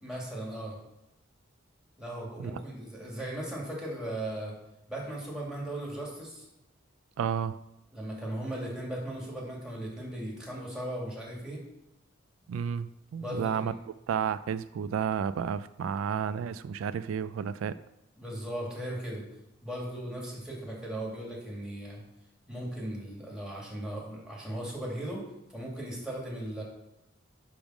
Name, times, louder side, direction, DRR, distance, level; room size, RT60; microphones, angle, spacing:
voice 1, 0.0-0.8 2.0-4.5 4.9-6.5 7.9-11.6 13.2-13.7 18.2-19.2 19.6-22.0 22.5-25.2 25.5-26.6, right 1 dB, 5° right, -4 dB, 2.2 m, -37 dB
voice 2, 7.2-7.6 12.5-13.7 14.1-17.8, right 7 dB, 80° right, 15 dB, 0.3 m, -31 dB
10.0 x 3.5 x 6.2 m, 0.90 s
head